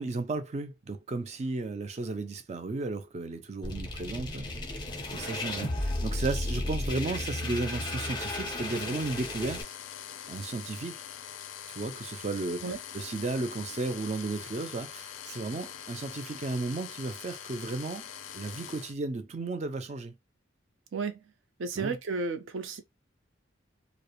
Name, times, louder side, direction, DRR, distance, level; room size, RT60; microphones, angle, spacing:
voice 1, 0.0-4.5 5.1-9.6 10.3-11.0 11.7-12.7 12.9-18.1 18.3-20.2 21.8-22.0, right 3 dB, 35° right, 0.3 m, -34 dB
sound 1, 3.6-9.6, left 2 dB, 20° left, 0.5 m, -34 dB
sound 2, 8.6-18.9, left 9 dB, 75° left, 0.4 m, -43 dB
voice 2, 21.6-22.8, right 4 dB, 85° right, 0.5 m, -33 dB
2.4 x 2.0 x 2.8 m
head